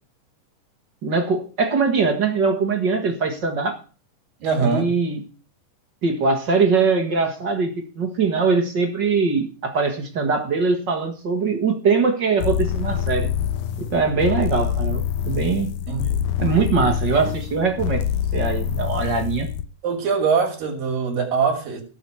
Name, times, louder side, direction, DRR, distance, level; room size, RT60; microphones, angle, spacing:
voice 1, 1.0-3.8 4.6-5.2 6.0-13.3 13.8-15.7 16.4-18.0 18.3-19.5, right 4 dB, 45° right, 1.7 m, -22 dB
voice 2, 4.4-4.9 15.9-16.3 19.8-21.8, right 5 dB, 90° right, 4.1 m, -22 dB
sound 1, 12.4-19.7, left 9 dB, 80° left, 2.3 m, -25 dB
16.5 x 6.0 x 6.9 m
omnidirectional pair, 3.9 m